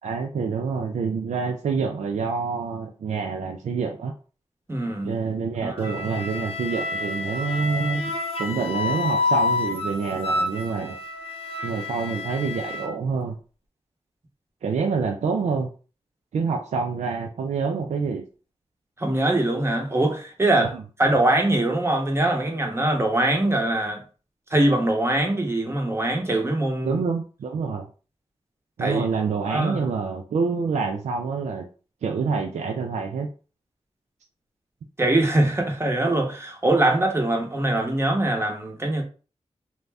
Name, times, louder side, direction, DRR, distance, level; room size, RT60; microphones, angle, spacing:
voice 1, 0.0-4.1 5.0-8.1 8.4-11.0 11.6-13.4 14.6-15.7 16.3-18.2 20.7-20.8 26.8-27.9 28.8-31.7 32.0-33.3, right 5 dB, 85° right, 0.4 m, -27 dB
voice 2, 4.7-5.1 5.6-6.0 19.0-24.0 24.5-27.0 28.8-29.1 29.5-29.9 35.0-39.0, right 1 dB, 20° right, 0.8 m, -23 dB
Wind instrument woodwind instrument, 5.8-12.9, left 3 dB, 55° left, 0.7 m, -28 dB
2.5 x 2.1 x 3.3 m
wide cardioid pair, 75°, 12 cm